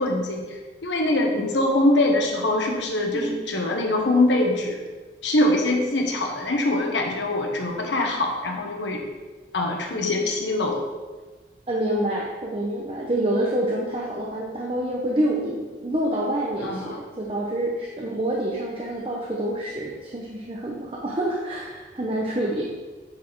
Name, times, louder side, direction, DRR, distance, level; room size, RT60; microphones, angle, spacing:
voice 1, 0.0-4.8 5.2-9.0 9.5-10.8 16.6-17.0, left 1 dB, 90° left, 1 dB, 1.3 m, -23 dB
voice 2, 11.7-22.8, right 1 dB, 30° right, -2 dB, 0.7 m, -27 dB
9.3 x 4.3 x 4.6 m, 1.3 s
head